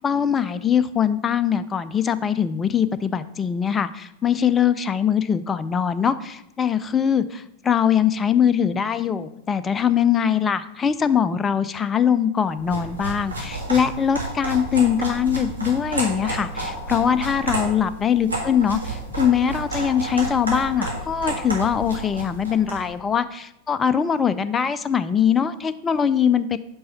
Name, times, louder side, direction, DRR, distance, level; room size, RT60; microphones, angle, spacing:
voice 1, 0.0-26.6, left 8 dB, 20° left, 13 dB, 0.4 m, -22 dB
sound 1, 12.5-22.9, right 2 dB, 85° right, 1.9 m, -31 dB
5.4 x 5.2 x 5.6 m, 0.83 s
figure-of-eight pair, 90°, 0 cm